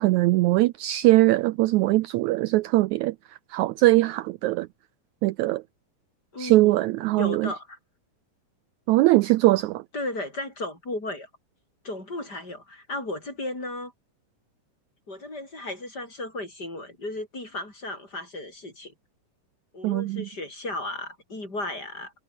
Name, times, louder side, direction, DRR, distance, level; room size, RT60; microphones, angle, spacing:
voice 1, 0.0-3.2 3.5-4.7 5.2-5.6 6.4-7.5 8.9-9.8 19.8-20.3, right 18 dB, 80° right, 1.7 m, -21 dB
voice 2, 6.3-6.9 7.1-7.8 9.9-11.3 11.8-13.9 15.1-18.9 19.7-22.1, left 2 dB, 25° left, 7.8 m, -35 dB
omnidirectional pair, 3.8 m